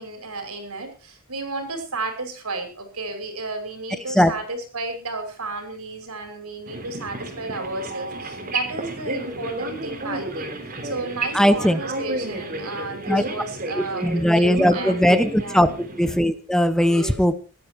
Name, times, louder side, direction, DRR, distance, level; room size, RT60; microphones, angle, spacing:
voice 1, 0.0-10.5 10.8-15.7 16.8-17.2, right 2 dB, 90° right, 7 dB, 5.8 m, -33 dB
sound 1, 6.6-16.2, right 2 dB, 40° right, 3.8 m, -32 dB
voice 2, 11.3-11.8 13.1-13.2 14.0-15.7 16.0-17.3, equal, 5° left, 12 dB, 0.9 m, -18 dB
17.5 x 13.0 x 4.6 m, 0.35 s
head